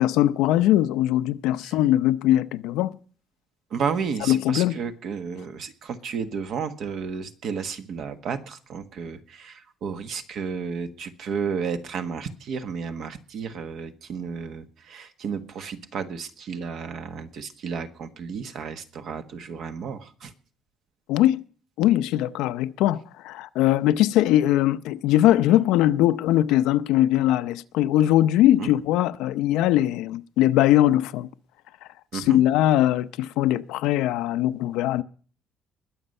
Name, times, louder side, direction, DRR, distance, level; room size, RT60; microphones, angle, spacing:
voice 1, 0.0-2.9 4.2-4.8 21.1-21.4 21.8-31.3 32.1-35.0, left 13 dB, 90° left, 0.6 m, -21 dB
voice 2, 3.7-20.3 28.6-28.7 32.1-32.4, right 6 dB, 50° right, 1.4 m, -32 dB
21.0 x 7.9 x 5.5 m
cardioid pair, 165°, 0 cm